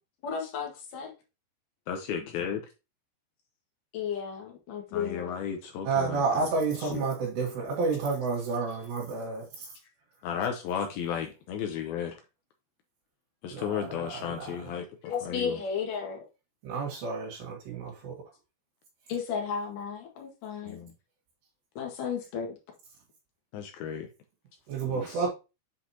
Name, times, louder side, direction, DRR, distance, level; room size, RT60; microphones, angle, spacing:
voice 1, 0.2-1.1 3.9-5.4 15.0-16.2 19.1-20.8 21.8-22.6, left 6 dB, 55° left, 3.0 m, -34 dB
voice 2, 1.9-2.6 4.9-6.5 6.8-7.0 10.2-12.2 13.4-14.9 15.2-15.6 20.7-20.9 23.5-24.1 24.8-25.3, left 8 dB, 80° left, 2.3 m, -34 dB
voice 3, 5.8-9.7 13.5-14.6 16.6-18.2 24.7-25.3, right 4 dB, 75° right, 3.8 m, -30 dB
7.9 x 4.9 x 2.8 m
omnidirectional pair, 5.0 m